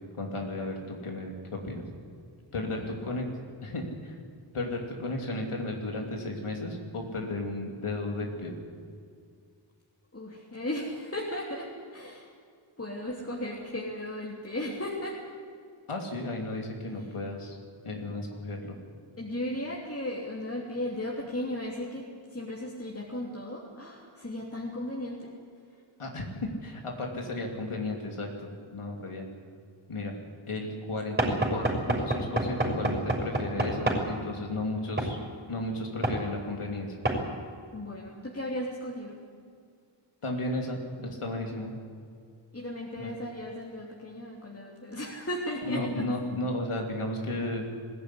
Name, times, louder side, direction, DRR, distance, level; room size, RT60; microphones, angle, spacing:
voice 1, 0.2-1.8 2.5-3.2 3.6-4.2 4.5-8.5 15.9-17.6 17.8-18.8 26.0-29.3 29.9-30.1 30.5-35.2 35.5-36.9 40.2-41.7 43.0-43.1 45.6-47.7, left 2 dB, 80° left, 1 dB, 3.0 m, -34 dB
voice 2, 2.5-3.0 10.1-12.3 12.8-15.2 19.2-25.3 37.7-39.1 42.5-46.1, left 1 dB, 30° left, -4 dB, 3.2 m, -36 dB
Knock / Wood, 31.2-34.1 35.0-35.2 36.0-36.2 37.0-37.2, right 1 dB, 20° right, 5.9 m, -27 dB
20.5 x 16.5 x 9.9 m, 2.2 s
wide cardioid pair, 90°, 50 cm